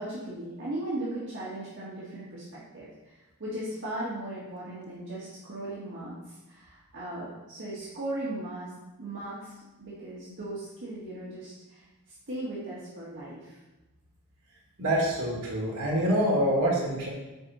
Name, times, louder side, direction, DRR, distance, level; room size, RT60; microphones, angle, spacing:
voice 1, 0.0-8.7 9.0-13.6, right 1 dB, 55° right, -7 dB, 1.8 m, -37 dB
voice 2, 14.8-17.1, equal, 75° right, -3 dB, 1.9 m, -26 dB
10.0 x 4.6 x 4.2 m, 1.1 s
head